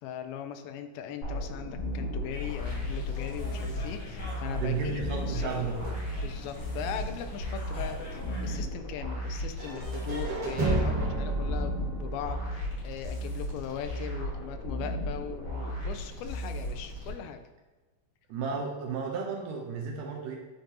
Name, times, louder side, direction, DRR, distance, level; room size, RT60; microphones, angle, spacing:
voice 1, 0.0-5.7 6.2-17.4, left 8 dB, 90° left, 7 dB, 2.4 m, -39 dB
sound 1, 1.2-17.1, equal, 50° left, 1.8 m, -35 dB
sound 2, 2.3-8.6, left 6 dB, 70° left, 1.2 m, -40 dB
voice 2, 4.5-5.9 18.3-20.4, right 5 dB, 75° right, 0 dB, 2.1 m, -33 dB
sound 3, 9.6-13.5, right 2 dB, 50° right, 1.5 m, -32 dB
9.7 x 3.9 x 2.8 m, 1.2 s
omnidirectional pair, 4.2 m